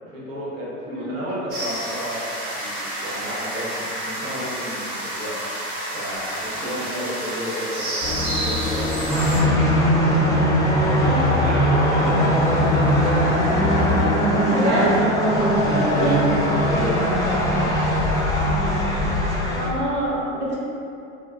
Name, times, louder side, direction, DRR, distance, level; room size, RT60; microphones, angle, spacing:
voice 1, 0.0-5.3 5.9-9.2 10.8-12.7 15.3-16.3 16.6-18.0, equal, 80° right, -7 dB, 1.0 m, -32 dB
sound 1, 1.5-9.4, right 1 dB, 55° right, 1.0 m, -30 dB
voice 2, 6.6-7.1 10.9-11.5 14.4-15.0 15.7-16.2 19.5-20.5, right 1 dB, 30° right, -7 dB, 0.7 m, -26 dB
sound 2, 8.0-15.6, left 2 dB, 25° left, 0.9 m, -26 dB
sound 3, 9.1-19.7, equal, 10° left, 0.5 m, -20 dB
2.2 x 2.1 x 3.4 m, 2.6 s
hypercardioid pair, 90°, 39 cm